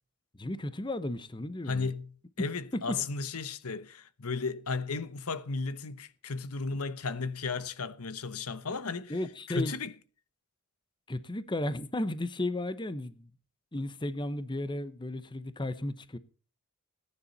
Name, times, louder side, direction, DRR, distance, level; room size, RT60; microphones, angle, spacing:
voice 1, 0.3-1.9 2.7-3.1 9.1-9.7 11.1-13.3 13.7-16.2, left 1 dB, 20° left, 0.9 m, -34 dB
voice 2, 1.7-9.1 9.5-9.9, left 4 dB, 80° left, 1.1 m, -34 dB
19.0 x 10.0 x 4.2 m
head